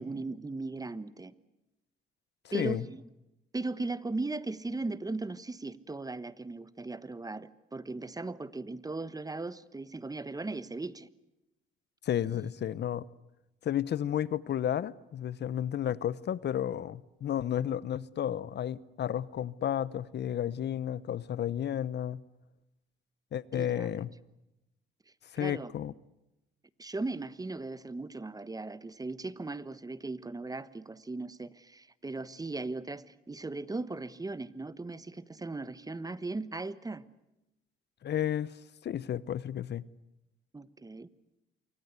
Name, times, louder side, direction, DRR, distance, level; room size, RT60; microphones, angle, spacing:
voice 1, 0.0-1.3 2.5-3.0 3.5-11.1 23.5-23.9 25.4-25.7 26.8-37.0 40.5-41.1, right 3 dB, 20° right, 1.2 m, -38 dB
voice 2, 2.5-2.8 12.0-13.1 13.6-22.2 23.3-24.1 25.3-25.9 38.0-38.5 38.8-39.8, left 10 dB, 60° left, 0.9 m, -32 dB
28.0 x 24.0 x 8.3 m
cardioid pair, 90°, 20 cm